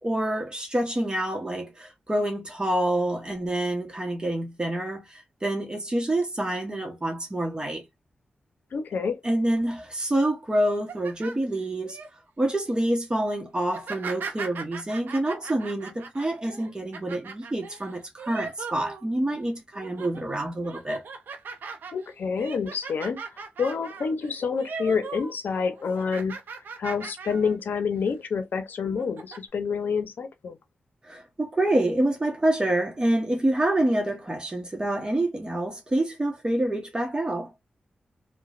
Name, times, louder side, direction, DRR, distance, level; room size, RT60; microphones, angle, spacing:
voice 1, 0.0-7.9 9.2-12.0 12.4-21.1 31.0-37.5, right 1 dB, 25° right, 0.9 m, -27 dB
voice 2, 8.7-9.2 21.9-26.4 26.8-30.6, left 5 dB, 80° left, 0.6 m, -28 dB
sound 1, 10.7-12.1 12.6-12.9 13.6-19.4 19.7-20.2 20.6-25.4 25.6-27.6 28.0-28.1 28.8-29.4, right 4 dB, 85° right, 0.6 m, -39 dB
2.9 x 2.1 x 2.3 m
cardioid pair, 60°, 3 cm